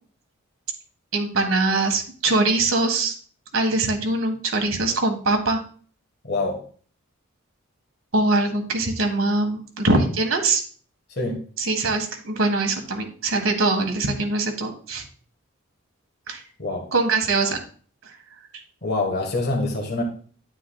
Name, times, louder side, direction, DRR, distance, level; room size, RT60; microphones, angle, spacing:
voice 1, 1.1-3.1 3.5-5.6 8.1-10.6 11.6-15.0 16.3-16.4 16.9-17.6, right 2 dB, 70° right, 4 dB, 1.7 m, -22 dB
voice 2, 6.2-6.6 11.1-11.4 16.6-16.9 18.8-20.0, left 2 dB, 50° left, 0 dB, 1.6 m, -25 dB
10.0 x 9.4 x 2.3 m, 0.43 s
head